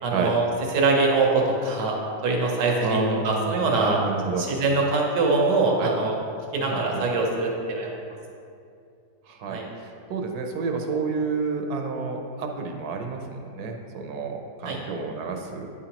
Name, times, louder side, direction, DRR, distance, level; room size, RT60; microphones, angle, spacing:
voice 1, 0.0-0.5 0.7-2.0 2.2-4.0 4.4-6.1 6.5-8.2 9.5-9.6 14.6-14.8, right 3 dB, 90° right, -1 dB, 1.5 m, -23 dB
voice 2, 2.8-4.5 5.8-5.9 6.6-7.1 9.3-15.7, right 4 dB, 75° right, 3 dB, 1.1 m, -30 dB
9.4 x 5.0 x 2.9 m, 2.4 s
omnidirectional pair, 1.8 m